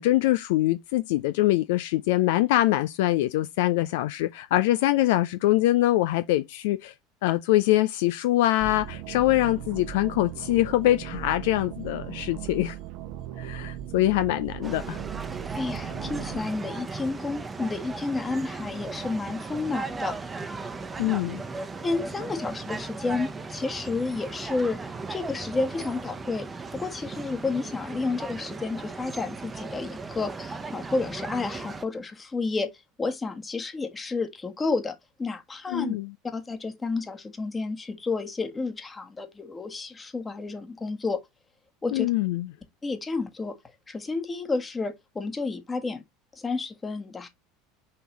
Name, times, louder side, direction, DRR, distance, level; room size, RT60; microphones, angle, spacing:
voice 1, 0.0-6.9 7.2-12.8 13.4-15.0 21.0-21.4 35.7-36.1 41.9-42.5, left 16 dB, 60° left, 0.5 m, -24 dB
sound 1, 8.6-16.4, right 12 dB, 50° right, 0.8 m, -38 dB
sound 2, 14.6-31.8, right 4 dB, 20° right, 0.9 m, -37 dB
voice 2, 15.5-20.2 21.8-32.7 33.0-36.0 36.3-41.2 41.8-42.1 42.8-43.6 43.9-46.0 46.4-47.3, left 3 dB, 20° left, 1.5 m, -31 dB
5.7 x 5.4 x 3.0 m
figure-of-eight pair, 75°, 0 cm